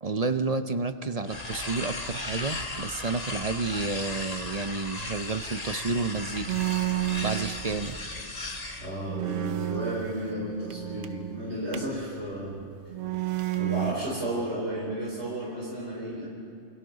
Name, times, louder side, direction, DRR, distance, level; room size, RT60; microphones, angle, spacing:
voice 1, 0.0-6.6 7.2-8.0, right 4 dB, 40° right, 9 dB, 0.7 m, -30 dB
sound 1, 1.2-8.9, left 2 dB, 35° left, 1.5 m, -36 dB
sound 2, 6.5-8.1 8.5-8.6 9.0-12.0 12.9-13.9, right 15 dB, 90° right, 1.1 m, -31 dB
voice 2, 8.8-12.6 13.6-16.3, right 1 dB, 65° right, -5 dB, 4.4 m, -33 dB
28.5 x 28.5 x 4.0 m, 2.5 s
omnidirectional pair, 1.2 m